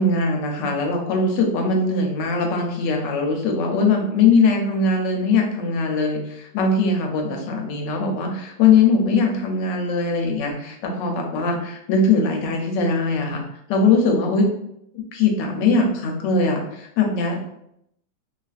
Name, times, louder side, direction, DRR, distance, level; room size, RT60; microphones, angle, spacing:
voice 1, 0.0-13.4 13.7-14.5 14.9-17.5, left 4 dB, 80° left, 2 dB, 1.2 m, -21 dB
2.9 x 2.4 x 2.3 m, 0.76 s
omnidirectional pair, 2.0 m